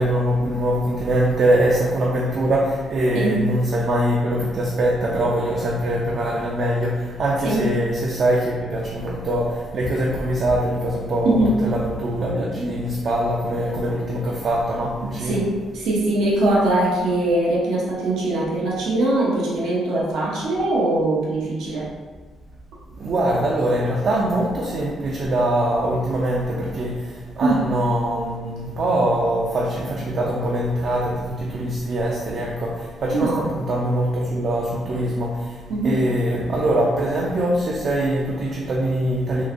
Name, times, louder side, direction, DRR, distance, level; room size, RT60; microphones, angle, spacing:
voice 1, 0.0-15.4 22.9-39.4, right 1 dB, 55° right, -3 dB, 0.5 m, -23 dB
voice 2, 11.2-11.6 15.1-21.9 27.4-27.7 33.1-33.5 35.7-36.0, right 2 dB, 85° right, -5 dB, 0.8 m, -21 dB
3.8 x 2.7 x 2.5 m, 1.4 s
cardioid pair, 90°, 0 cm